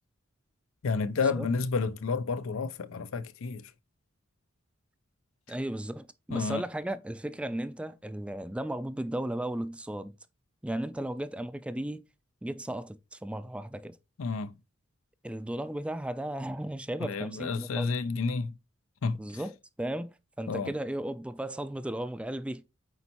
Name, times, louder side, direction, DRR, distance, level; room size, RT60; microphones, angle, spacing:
voice 1, 0.8-3.7 6.3-6.6 14.2-14.5 17.0-18.5 19.0-19.4 20.5-20.7, left 4 dB, 90° left, 0.5 m, -30 dB
voice 2, 5.5-10.1 10.6-12.0 12.4-14.0 15.2-17.9 19.2-19.5 19.8-22.6, right 1 dB, 5° right, 0.3 m, -35 dB
8.2 x 4.4 x 2.9 m
head